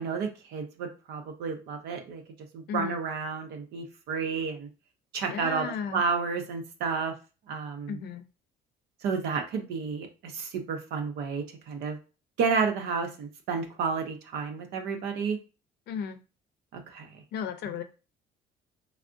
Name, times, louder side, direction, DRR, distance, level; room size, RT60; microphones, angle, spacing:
voice 1, 0.0-2.2 2.5-4.7 5.1-5.7 5.9-7.1 7.5-8.0 9.0-12.0 12.4-15.4 16.7-17.1, right 5 dB, 80° right, 4 dB, 0.7 m, -31 dB
voice 2, 5.3-6.0 7.9-8.2 15.9-16.2 17.3-17.8, left 7 dB, 75° left, 8 dB, 0.5 m, -34 dB
3.4 x 2.0 x 2.5 m, 0.32 s
cardioid pair, 110°, 17 cm